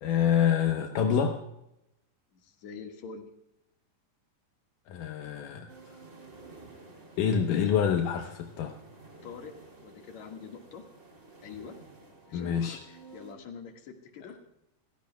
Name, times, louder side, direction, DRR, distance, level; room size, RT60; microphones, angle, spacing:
voice 1, 0.0-1.4 4.9-5.7 7.2-8.7 12.3-12.8, left 8 dB, 80° left, 3 dB, 2.6 m, -26 dB
voice 2, 2.3-3.3 9.2-9.5 9.8-10.8 11.4-11.8 12.3-14.4, left 6 dB, 60° left, 3 dB, 2.9 m, -45 dB
sound 1, 5.7-13.3, right 3 dB, 25° right, 2.5 m, -52 dB
30.0 x 16.5 x 2.3 m, 0.85 s
omnidirectional pair, 3.8 m